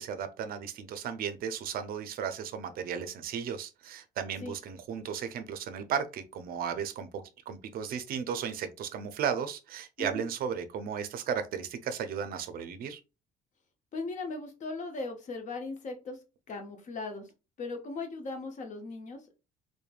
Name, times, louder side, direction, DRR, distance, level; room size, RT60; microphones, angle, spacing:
voice 1, 0.0-13.0, right 7 dB, 60° right, 0.4 m, -35 dB
voice 2, 13.9-16.2 16.5-17.3 17.6-19.3, left 3 dB, 45° left, 0.8 m, -38 dB
3.1 x 2.1 x 2.3 m
cardioid pair, 110°, 17 cm